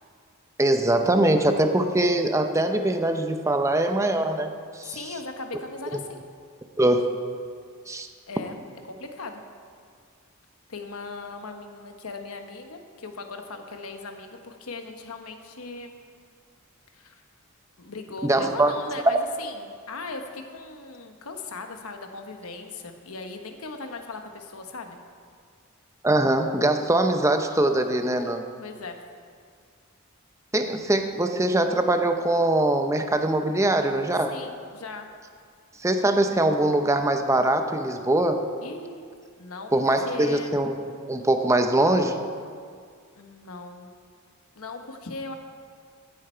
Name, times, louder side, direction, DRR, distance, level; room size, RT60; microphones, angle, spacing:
voice 1, 0.6-4.5 4.8-5.0 6.8-7.1 7.9-8.1 18.2-18.7 26.0-28.4 30.5-34.3 35.8-38.4 39.7-40.8 41.1-42.2, right 1 dB, 15° right, 6 dB, 0.6 m, -22 dB
voice 2, 4.8-6.2 8.3-8.6 8.9-9.4 10.7-15.9 16.9-17.2 17.8-25.0 28.6-29.0 34.3-35.1 38.6-39.1 39.4-40.5 43.1-43.9 44.6-45.3, left 3 dB, 85° left, 5 dB, 1.1 m, -38 dB
15.5 x 8.8 x 4.5 m, 2.1 s
head